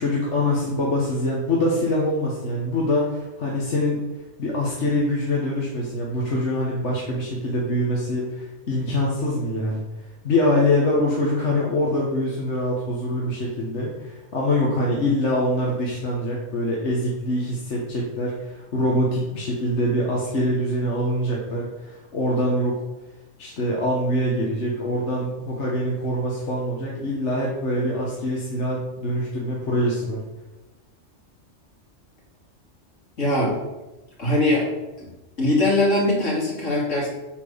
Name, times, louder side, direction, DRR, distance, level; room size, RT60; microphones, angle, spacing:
voice 1, 0.0-4.0 4.4-9.8 10.2-22.8 23.4-30.2, left 1 dB, 70° left, -4 dB, 1.8 m, -24 dB
voice 2, 33.2-33.5 34.2-34.7 35.0-35.1 35.4-37.1, left 1 dB, 85° left, -4 dB, 3.3 m, -21 dB
9.0 x 4.6 x 6.8 m, 1.1 s
omnidirectional pair, 1.3 m